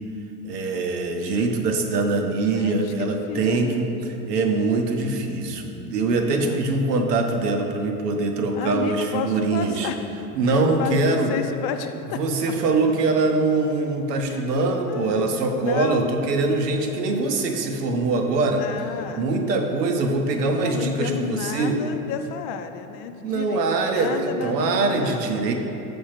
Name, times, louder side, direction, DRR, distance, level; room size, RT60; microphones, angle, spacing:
voice 1, 0.4-3.9 4.3-9.9 10.3-11.3 12.1-18.6 19.2-21.8 23.2-25.5, right 3 dB, 85° right, 4 dB, 0.9 m, -23 dB
voice 2, 2.5-3.7 6.0-6.6 8.5-10.0 10.5-12.5 14.3-14.5 14.9-15.3 15.6-16.1 18.6-19.3 20.6-25.5, left 8 dB, 50° left, 8 dB, 0.6 m, -32 dB
6.9 x 3.5 x 5.8 m, 2.9 s
hypercardioid pair, 90°, 47 cm